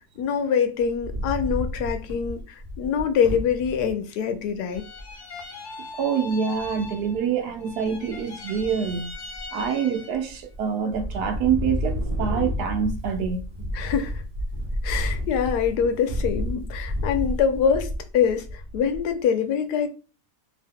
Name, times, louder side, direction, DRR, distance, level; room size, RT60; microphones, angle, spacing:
voice 1, 0.2-4.8 13.7-14.2 14.8-19.9, left 7 dB, 80° left, 1.2 m, -24 dB
Wind, 0.9-3.9 4.4-4.5 4.7-5.1 6.6-7.2 7.7-8.2 8.5-9.7 10.1-10.6 10.9-19.1, equal, 30° right, 0.7 m, -31 dB
sound 1, 4.7-7.3 7.6-10.3, left 3 dB, 55° left, 1.0 m, -40 dB
voice 2, 6.0-9.1 9.5-13.4, right 7 dB, 80° right, 1.2 m, -26 dB
2.8 x 2.7 x 3.6 m
omnidirectional pair, 1.7 m